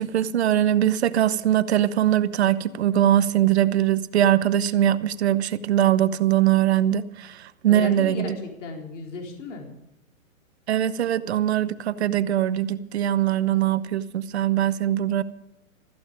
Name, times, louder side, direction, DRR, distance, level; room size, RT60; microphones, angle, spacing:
voice 1, 0.0-8.3 10.7-15.2, right 11 dB, 50° right, 16 dB, 0.9 m, -22 dB
voice 2, 7.7-9.7, left 3 dB, 60° left, 2 dB, 4.2 m, -34 dB
15.5 x 14.5 x 5.2 m, 0.88 s
hypercardioid pair, 160°, 42 cm